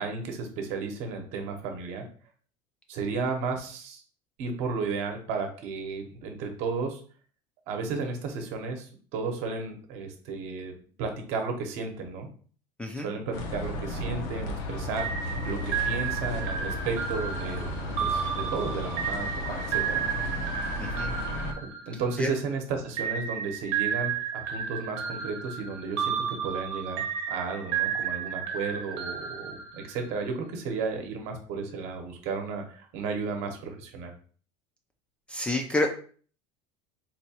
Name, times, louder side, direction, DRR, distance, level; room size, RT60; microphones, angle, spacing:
voice 1, 0.0-2.0 2.9-4.0 4.4-7.0 7.7-10.7 11.0-12.3 13.0-17.7 18.0-20.1 21.6-34.1, right 4 dB, 55° right, 4 dB, 0.8 m, -33 dB
sound 1, 13.3-21.5, left 1 dB, 70° left, 0.7 m, -34 dB
sound 2, 15.0-22.4 23.0-30.2, right 8 dB, 85° right, 0.8 m, -32 dB
voice 2, 20.8-21.1 22.2-22.3 35.3-35.9, left 2 dB, 10° left, 2 dB, 0.3 m, -28 dB
4.2 x 2.3 x 2.8 m, 0.43 s
cardioid pair, 150°, 13 cm